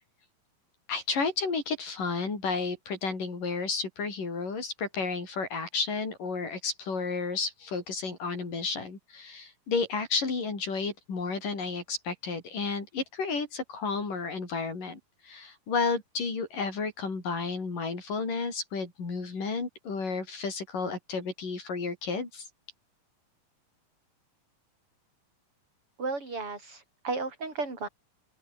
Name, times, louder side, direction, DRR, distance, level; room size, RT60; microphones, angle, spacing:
voice 1, 0.9-22.5, left 4 dB, 65° left, 8.1 m, -32 dB
voice 2, 26.0-27.9, right 3 dB, 35° right, 7.2 m, -34 dB
open air
omnidirectional pair, 4.1 m